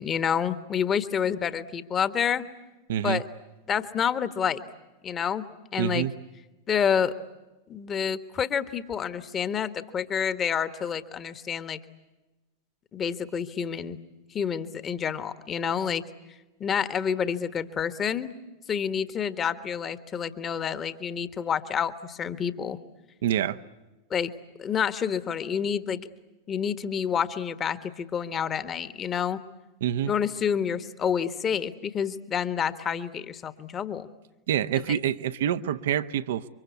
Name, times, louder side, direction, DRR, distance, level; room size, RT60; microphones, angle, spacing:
voice 1, 0.0-2.5 3.0-3.2 3.7-4.6 5.0-5.4 5.7-6.1 6.7-7.1 7.7-11.8 12.9-14.0 14.3-16.0 16.6-18.3 18.7-22.8 24.1-24.3 24.6-26.1 26.5-29.4 30.1-34.1 34.9-35.0, left 7 dB, 25° left, 13 dB, 1.5 m, -28 dB
voice 2, 2.9-3.2 5.8-6.1 23.2-23.6 29.8-30.1 34.5-36.5, right 10 dB, 55° right, 12 dB, 1.0 m, -26 dB
28.5 x 24.5 x 8.4 m, 1.1 s
figure-of-eight pair, 90°, 0 cm